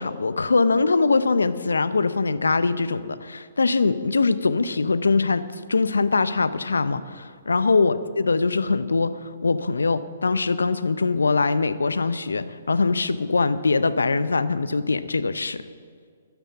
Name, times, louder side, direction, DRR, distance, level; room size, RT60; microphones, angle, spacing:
voice 1, 0.0-15.6, left 4 dB, 85° left, 15 dB, 0.6 m, -22 dB
11.5 x 9.7 x 6.8 m, 2.1 s
hypercardioid pair, 130°, 0 cm